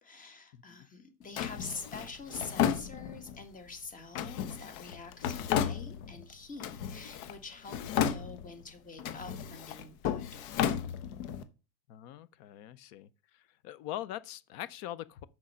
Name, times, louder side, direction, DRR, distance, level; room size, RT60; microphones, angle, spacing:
voice 1, 0.0-10.8, left 4 dB, 15° left, 1.5 m, -46 dB
Drawer open or close, 1.4-3.4 4.2-6.2 6.6-7.4 7.7-8.6 9.0-11.4, left 9 dB, 60° left, 1.2 m, -33 dB
voice 2, 11.9-13.1 13.3-15.3, left 13 dB, 35° left, 0.4 m, -42 dB
6.3 x 5.9 x 5.4 m
supercardioid pair, 165°, 47 cm